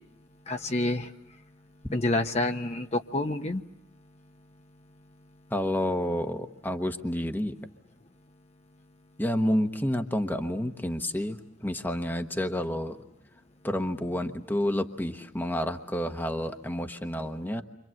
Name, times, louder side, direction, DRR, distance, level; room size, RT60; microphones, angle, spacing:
voice 1, 0.5-1.1 1.9-3.6, left 2 dB, 35° left, 5 dB, 1.0 m, -28 dB
voice 2, 5.5-7.6 9.2-13.0 13.6-17.6, left 1 dB, 10° left, 6 dB, 1.1 m, -29 dB
29.5 x 25.5 x 7.7 m, 0.81 s
head